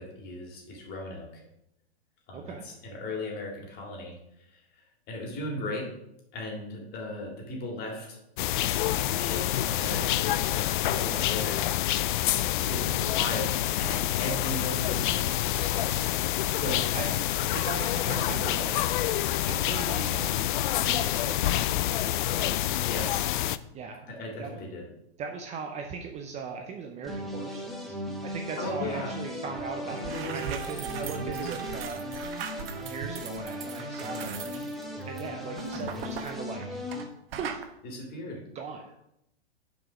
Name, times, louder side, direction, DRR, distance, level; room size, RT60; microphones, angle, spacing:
voice 1, 0.0-1.4 2.3-4.1 5.1-5.9 6.3-8.2 8.9-15.5 16.6-17.5 17.9-18.0 22.8-23.3 24.1-24.9 28.6-29.2 29.9-31.4 34.0-34.3 37.8-38.4, left 1 dB, 30° left, 0 dB, 3.1 m, -37 dB
voice 2, 2.3-2.6 15.5-16.0 16.7-18.8 19.1-22.6 23.7-24.0 24.4-24.6 25.2-28.0 28.3-32.0 32.8-34.8 35.1-36.7 37.3-37.6 38.5-38.8, right 5 dB, 20° right, 3 dB, 0.7 m, -39 dB
sound 1, 8.4-23.6, left 13 dB, 50° left, 0.5 m, -27 dB
sound 2, 27.0-37.1, equal, ahead, 1.4 m, -37 dB
sound 3, 29.6-29.7 29.9-37.1 37.3-37.7, right 7 dB, 65° right, 1.2 m, -40 dB
7.5 x 5.3 x 6.1 m, 0.81 s
hypercardioid pair, 130°, 32 cm